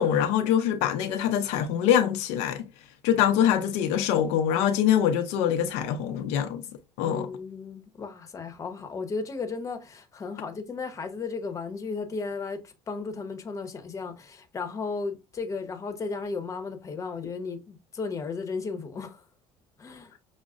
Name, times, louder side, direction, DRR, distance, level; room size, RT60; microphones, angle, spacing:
voice 1, 0.0-2.7 3.0-6.6 7.0-7.3, left 9 dB, 75° left, 0.5 m, -24 dB
voice 2, 7.1-19.2 19.8-20.1, left 4 dB, 25° left, 0.8 m, -35 dB
6.1 x 2.0 x 2.4 m
cardioid pair, 115°, 12 cm